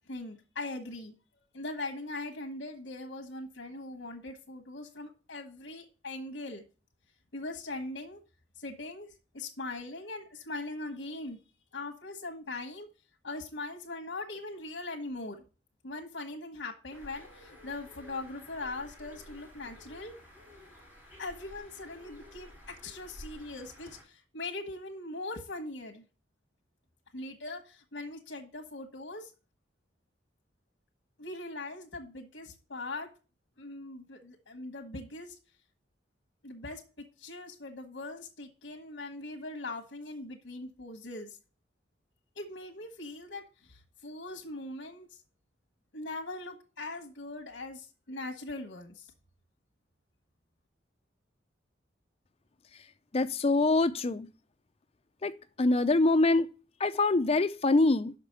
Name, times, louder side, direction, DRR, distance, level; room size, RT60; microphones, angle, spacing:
voice 1, 0.1-1.1 1.5-6.6 7.3-8.2 8.6-11.4 11.7-12.9 13.2-15.4 15.8-20.1 21.2-26.0 27.1-29.3 31.2-33.1 33.6-35.4 36.4-36.8 37.2-41.4 42.3-45.1 45.9-49.1, left 2 dB, 75° left, 1.2 m, -41 dB
Bird, 16.9-24.0, left 1 dB, 10° right, 3.0 m, -52 dB
voice 2, 53.1-54.3 55.2-55.3 55.6-56.5 56.8-58.1, left 2 dB, 35° left, 0.5 m, -24 dB
5.9 x 5.7 x 6.6 m
head